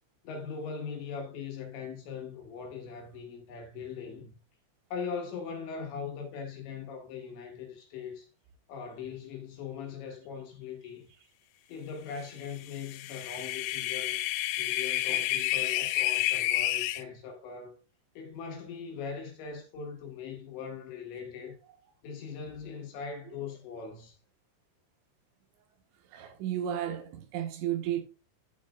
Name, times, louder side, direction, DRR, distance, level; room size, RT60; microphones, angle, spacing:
voice 1, 0.2-4.4 4.9-8.3 8.7-11.1 11.7-14.2 14.6-17.8 18.2-21.6 22.0-24.2, left 6 dB, 70° left, 3.6 m, -40 dB
sound 1, 12.7-17.0, left 15 dB, 90° left, 3.4 m, -30 dB
voice 2, 26.1-28.0, right 11 dB, 70° right, 3.3 m, -33 dB
12.5 x 6.2 x 2.3 m
omnidirectional pair, 5.9 m